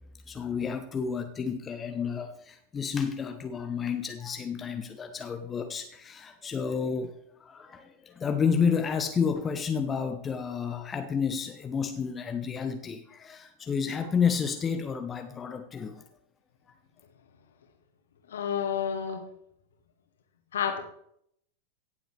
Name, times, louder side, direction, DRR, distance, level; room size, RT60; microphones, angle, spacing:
voice 1, 0.3-16.0, left 6 dB, 20° left, 7 dB, 0.8 m, -30 dB
voice 2, 18.3-19.2 20.5-20.9, left 8 dB, 65° left, 5 dB, 1.9 m, -30 dB
16.5 x 7.6 x 3.3 m, 0.70 s
figure-of-eight pair, 90°, 0 cm